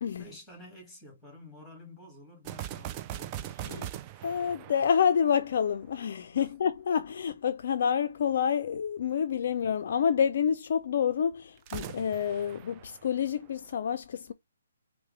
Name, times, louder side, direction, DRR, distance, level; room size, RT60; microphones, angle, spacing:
voice 1, 0.2-3.5 6.4-6.5, left 1 dB, 5° left, 2.0 m, -50 dB
sound 1, 2.4-5.9 11.6-13.7, right 12 dB, 25° right, 0.3 m, -41 dB
voice 2, 3.6-3.9 4.2-14.3, left 7 dB, 55° left, 0.4 m, -28 dB
4.6 x 2.1 x 3.2 m
hypercardioid pair, 150°, 0 cm